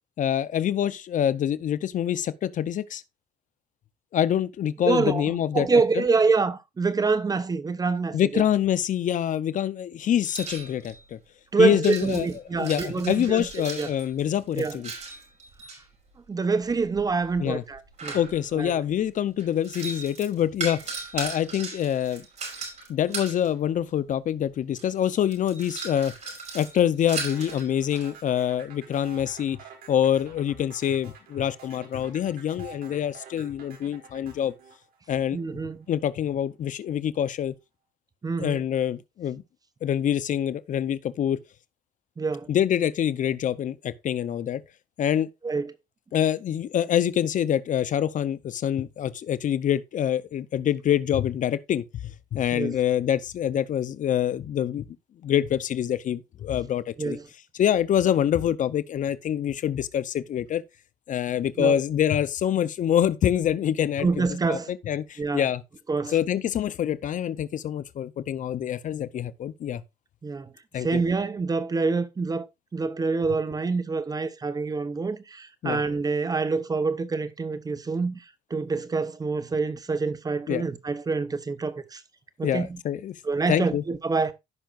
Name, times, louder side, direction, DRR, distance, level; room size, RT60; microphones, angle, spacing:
voice 1, 0.2-3.0 4.1-6.0 8.1-11.2 11.6-12.3 12.5-14.9 17.4-17.6 18.1-22.2 22.9-26.1 26.5-29.6 29.9-34.5 35.1-35.4 35.9-37.5 38.4-39.4 39.8-41.4 42.5-44.6 45.0-45.3 46.1-51.8 52.3-54.8 55.2-57.2 57.6-60.6 61.1-65.6 66.1-69.8 70.7-71.0 75.6-75.8 80.5-80.7 82.4-83.1 83.5-83.8, left 10 dB, 50° left, 0.7 m, -25 dB
voice 2, 4.8-8.4 11.5-13.5 13.8-13.9 14.6-14.8 16.3-18.2 18.5-18.8 35.3-35.8 38.2-38.6 42.2-42.5 45.4-45.7 52.5-52.8 57.0-57.2 61.6-61.8 64.0-64.7 65.2-65.4 65.9-66.2 70.2-70.5 70.8-72.4 72.7-78.2 78.5-82.0 82.4-82.8 83.2-84.3, right 4 dB, 20° right, 0.8 m, -26 dB
sound 1, 10.2-11.0 11.8-15.8 16.7-18.7 19.4-23.5 24.4-24.5 24.8-28.1, right 4 dB, 45° right, 5.4 m, -37 dB
sound 2, 27.3-35.6, right 6 dB, 65° right, 4.6 m, -48 dB
15.0 x 5.7 x 2.5 m
cardioid pair, 110°, 17 cm